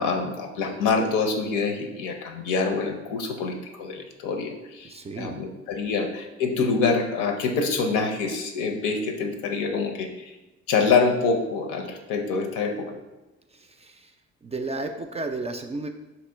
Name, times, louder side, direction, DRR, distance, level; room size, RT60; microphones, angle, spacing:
voice 1, 0.0-10.3 10.7-12.9, left 4 dB, 75° left, 5 dB, 0.6 m, -26 dB
voice 2, 4.8-5.4 13.5-14.1 14.4-15.9, right 2 dB, 20° right, 5 dB, 0.3 m, -33 dB
3.0 x 3.0 x 4.3 m, 1.0 s
hypercardioid pair, 55°, 32 cm